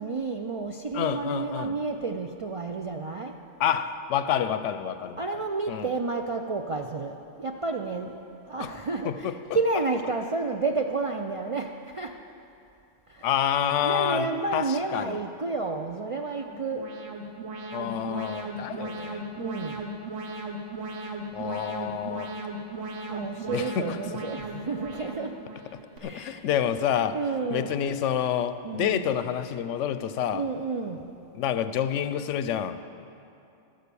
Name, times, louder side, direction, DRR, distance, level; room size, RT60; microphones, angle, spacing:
voice 1, 0.0-3.3 5.2-12.2 13.1-13.3 13.8-16.9 19.4-19.9 23.1-25.4 26.0-26.5 27.1-27.9 28.6-29.1 30.3-31.1, right 3 dB, 55° right, 3 dB, 0.3 m, -31 dB
voice 2, 0.9-1.8 3.6-5.2 5.7-5.9 8.6-8.7 9.0-9.4 13.2-15.2 17.7-19.2 21.3-22.3 23.5-24.0 26.0-27.2 27.5-30.4 31.3-32.8, left 9 dB, 85° left, 11 dB, 0.9 m, -28 dB
Alarm, 16.1-26.0, right 2 dB, 85° right, 1.5 m, -37 dB
12.5 x 9.2 x 6.8 m, 2.7 s
omnidirectional pair, 1.2 m